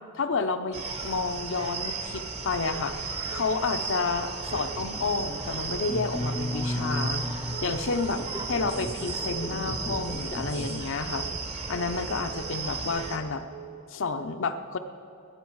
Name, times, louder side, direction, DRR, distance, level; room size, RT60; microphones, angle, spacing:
voice 1, 0.1-7.2 7.6-8.2 8.5-11.3 11.7-13.4 13.9-14.8, left 4 dB, 60° left, 8 dB, 0.7 m, -30 dB
sound 1, 0.7-13.2, right 4 dB, 30° right, 0.9 m, -35 dB
Telephone, 2.7-3.0 3.3-3.6 3.9-4.2 4.5-4.8 5.1-5.4 5.7-6.0 6.3-6.6 6.9-7.2 7.5-7.8 8.1-8.4 8.7-9.0 9.3-9.6 9.9-10.2 10.5-10.8 11.1-11.4 11.7-12.0 12.3-12.6 12.9-13.2 13.5-13.8, right 12 dB, 85° right, 0.9 m, -44 dB
sound 2, 4.5-10.7, left 1 dB, 10° left, 0.6 m, -35 dB
19.0 x 10.0 x 4.7 m, 2.8 s
head